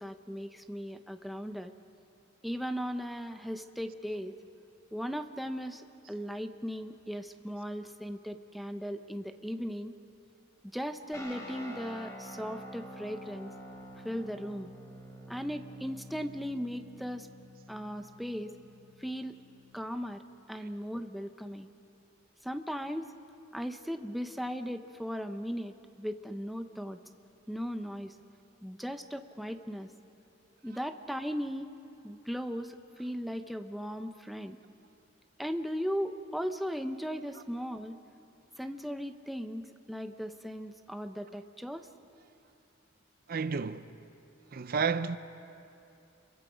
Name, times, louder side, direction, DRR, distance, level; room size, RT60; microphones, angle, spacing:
voice 1, 0.0-1.7 2.4-4.3 4.9-9.9 10.7-13.5 14.0-14.7 15.3-17.3 17.7-18.5 19.0-19.4 19.7-20.2 20.5-21.7 22.4-23.1 23.5-27.0 27.5-28.2 28.6-29.9 30.6-31.7 32.0-34.6 35.4-38.0 38.6-41.9, equal, ahead, 0.6 m, -37 dB
sound 1, 11.1-20.0, equal, 15° left, 3.1 m, -48 dB
voice 2, 43.3-43.9 44.5-45.2, right 5 dB, 50° right, 0.5 m, -31 dB
28.0 x 23.0 x 5.1 m
head